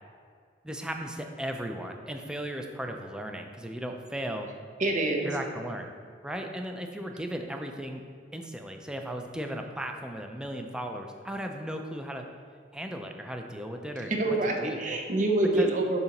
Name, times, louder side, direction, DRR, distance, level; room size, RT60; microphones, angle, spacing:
voice 1, 0.6-4.5 5.2-5.9 6.2-8.0 8.3-12.2 12.7-15.0 15.5-15.7, equal, 5° right, 3 dB, 0.4 m, -36 dB
voice 2, 4.8-5.3 14.1-16.0, right 2 dB, 45° right, 2 dB, 0.7 m, -26 dB
6.7 x 2.9 x 5.8 m, 2.1 s
head